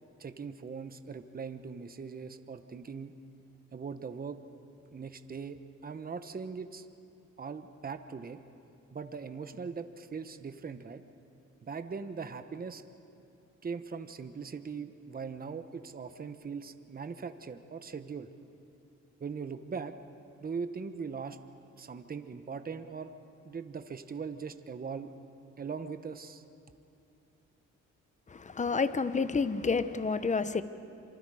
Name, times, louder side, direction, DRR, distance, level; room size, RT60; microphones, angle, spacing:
voice 1, 0.2-3.1 3.7-4.4 4.9-6.9 7.4-8.4 8.9-11.0 11.6-12.8 13.6-18.3 19.2-19.9 20.4-21.4 21.8-23.1 23.4-25.1 25.6-26.4, right 5 dB, 30° right, 9 dB, 1.1 m, -40 dB
voice 2, 28.3-30.6, left 4 dB, 25° left, 12 dB, 1.0 m, -29 dB
26.5 x 25.0 x 5.0 m, 2.7 s
cardioid pair, 90°, 30 cm